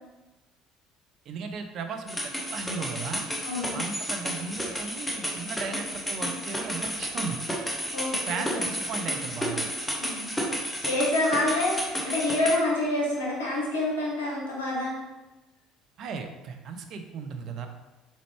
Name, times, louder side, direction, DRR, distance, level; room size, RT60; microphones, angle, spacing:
voice 1, 1.3-3.3 3.7-7.4 8.3-9.7 16.0-17.7, right 5 dB, 50° right, 6 dB, 0.4 m, -36 dB
sound 1, 2.1-12.6, equal, 10° left, 0.9 m, -32 dB
voice 2, 3.4-3.8 7.9-8.7 10.0-10.3 10.8-15.0, left 2 dB, 75° left, -5 dB, 1.1 m, -27 dB
3.8 x 3.2 x 3.2 m, 1.1 s
figure-of-eight pair, 55°, 0 cm